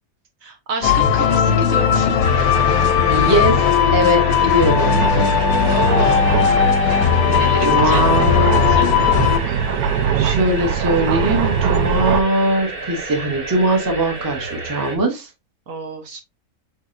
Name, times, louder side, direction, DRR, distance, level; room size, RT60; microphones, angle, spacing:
voice 1, 0.4-2.2 5.4-6.3 7.2-8.9 15.7-16.2, right 3 dB, 65° right, 4 dB, 1.4 m, -29 dB
sound 1, 0.8-9.4, left 7 dB, 85° left, 1.1 m, -17 dB
sound 2, 2.2-15.0, right 3 dB, 45° right, 1.2 m, -30 dB
voice 2, 3.1-3.6 3.9-5.1 5.6-5.7 7.6-8.5 10.2-15.3, right 1 dB, 20° right, 4 dB, 0.7 m, -20 dB
sound 3, 4.9-12.2, right 7 dB, 85° right, 1.1 m, -23 dB
5.0 x 3.7 x 2.5 m, 0.23 s
omnidirectional pair, 1.5 m